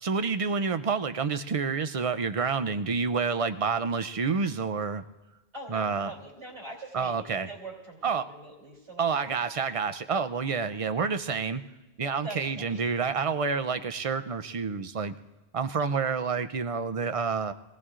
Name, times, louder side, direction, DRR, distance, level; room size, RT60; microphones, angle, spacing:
voice 1, 0.0-5.0 5.7-6.1 6.9-7.5 8.0-8.3 9.0-11.6 12.0-15.1 15.5-17.5, right 5 dB, 45° right, 11 dB, 0.4 m, -28 dB
voice 2, 5.5-9.7 12.2-12.9, right 2 dB, 90° right, -2 dB, 3.4 m, -44 dB
26.0 x 18.5 x 2.5 m, 1.1 s
omnidirectional pair, 1.1 m